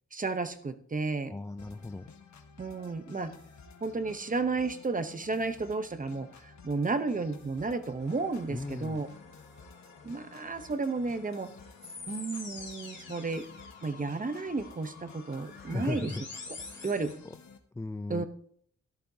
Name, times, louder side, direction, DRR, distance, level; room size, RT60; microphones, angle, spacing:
voice 1, 0.1-1.3 2.6-3.3 3.8-9.1 10.0-11.5 12.1-13.5 13.8-16.1 16.5-16.6 16.8-17.1 18.1-18.3, right 3 dB, 25° right, 9 dB, 0.8 m, -32 dB
voice 2, 1.3-2.1 8.5-9.0 15.7-16.2 16.7-17.4 17.7-18.3, left 2 dB, 10° left, 9 dB, 0.3 m, -37 dB
sound 1, 1.6-17.6, left 5 dB, 70° left, 1.4 m, -53 dB
sound 2, 8.0-17.1, left 4 dB, 40° left, 2.7 m, -48 dB
14.5 x 13.0 x 2.8 m, 0.64 s
wide cardioid pair, 170°, 30 cm